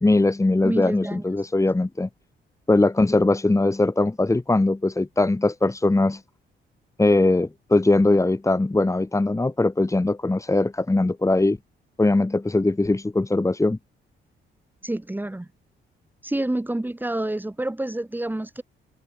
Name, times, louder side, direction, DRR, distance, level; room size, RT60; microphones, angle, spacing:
voice 1, 0.0-2.1 2.7-6.2 7.0-11.6 12.0-13.8, left 2 dB, 15° left, 3.4 m, -21 dB
voice 2, 0.6-1.5 14.8-15.5 16.2-18.6, right 1 dB, 10° right, 3.6 m, -28 dB
cardioid pair, 90°, 20 cm